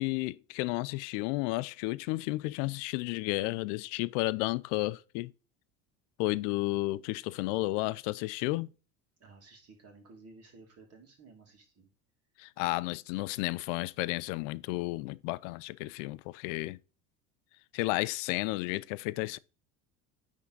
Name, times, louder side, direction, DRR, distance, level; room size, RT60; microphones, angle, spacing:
voice 1, 0.0-5.3 6.2-8.7 12.4-16.8 17.7-19.4, left 20 dB, 85° left, 0.5 m, -32 dB
voice 2, 9.2-11.9, right 3 dB, 45° right, 2.6 m, -55 dB
9.5 x 3.7 x 3.9 m
cardioid pair, 115°, 35 cm